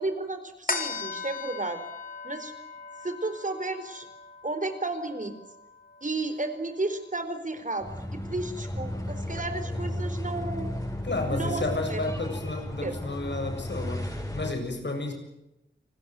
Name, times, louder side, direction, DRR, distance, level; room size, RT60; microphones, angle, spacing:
voice 1, 0.0-1.8 2.2-2.5 3.0-4.1 4.4-5.3 6.0-10.7 11.3-12.3 12.8-12.9, right 2 dB, 45° right, 9 dB, 4.4 m, -33 dB
sound 1, 0.7-7.4 7.9-8.0, left 4 dB, 50° left, 4.2 m, -39 dB
sound 2, 7.8-14.5, left 1 dB, 20° left, 7.6 m, -34 dB
voice 2, 11.0-15.1, left 2 dB, 75° left, 5 dB, 7.4 m, -32 dB
29.0 x 20.5 x 7.7 m, 0.90 s
wide cardioid pair, 65°, 18 cm